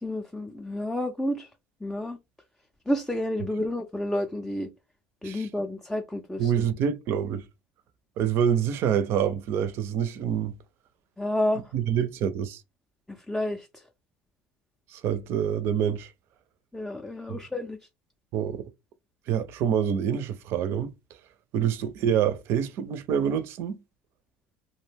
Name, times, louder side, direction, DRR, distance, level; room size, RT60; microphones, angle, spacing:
voice 1, 0.0-1.5 1.8-2.2 2.9-4.7 5.2-6.5 11.2-11.6 13.1-13.7 16.7-17.8, left 1 dB, 5° left, 0.4 m, -30 dB
voice 2, 5.2-5.6 6.4-7.5 8.2-10.5 11.7-12.6 14.9-16.1 17.3-17.4 18.3-18.7 19.3-20.9 21.5-23.8, right 8 dB, 55° right, 0.4 m, -26 dB
2.4 x 2.1 x 3.3 m
supercardioid pair, 100°, 5 cm